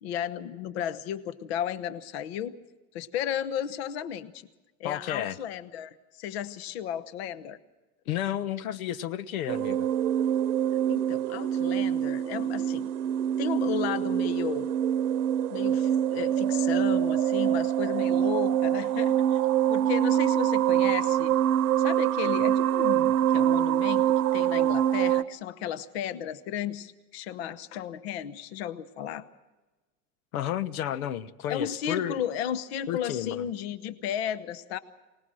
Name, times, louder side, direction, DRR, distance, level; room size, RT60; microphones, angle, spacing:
voice 1, 0.0-2.6 2.9-4.3 4.8-7.6 10.9-12.9 13.4-14.8 15.5-19.4 19.7-21.3 21.8-29.2 31.5-34.8, left 9 dB, 40° left, 14 dB, 1.0 m, -34 dB
voice 2, 4.8-5.4 8.1-9.9 30.3-32.2 32.9-33.4, left 11 dB, 65° left, 16 dB, 1.2 m, -32 dB
sound 1, 9.5-25.2, right 10 dB, 70° right, 1.1 m, -25 dB
24.5 x 19.5 x 6.3 m, 1.2 s
supercardioid pair, 175°, 46 cm